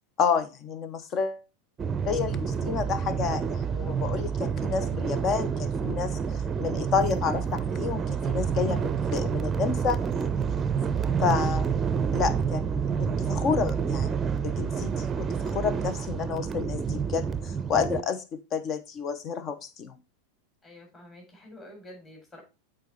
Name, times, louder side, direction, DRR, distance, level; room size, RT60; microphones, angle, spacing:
voice 1, 0.2-1.4 2.1-6.2 6.6-10.0 11.2-11.7 12.1-14.1 14.4-20.0, left 6 dB, 40° left, 12 dB, 0.9 m, -30 dB
sound 1, 1.8-18.0, right 6 dB, 25° right, 0.6 m, -28 dB
voice 2, 20.6-22.4, left 1 dB, 25° left, 0 dB, 4.4 m, -48 dB
8.0 x 4.3 x 4.1 m, 0.28 s
hypercardioid pair, 90°, 0 cm